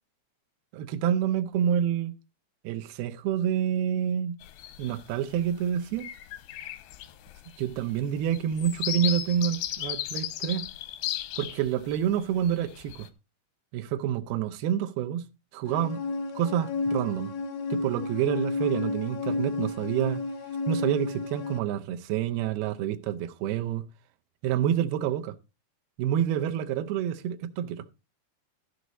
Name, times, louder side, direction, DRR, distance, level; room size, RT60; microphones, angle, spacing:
voice 1, 0.7-2.1 2.6-4.4 4.8-6.1 7.6-10.7 11.4-13.1 13.7-15.2 15.5-16.0 16.3-17.3 17.7-20.2 20.7-23.8 24.4-25.3 26.0-27.8, right 10 dB, 80° right, 2.7 m, -28 dB
sound 1, 4.4-5.0 5.5-5.7 5.9-12.0 12.4-13.1, left 12 dB, 90° left, 2.9 m, -35 dB
sound 2, 15.7-21.6, left 3 dB, 70° left, 1.5 m, -31 dB
13.5 x 6.4 x 4.0 m
omnidirectional pair, 4.5 m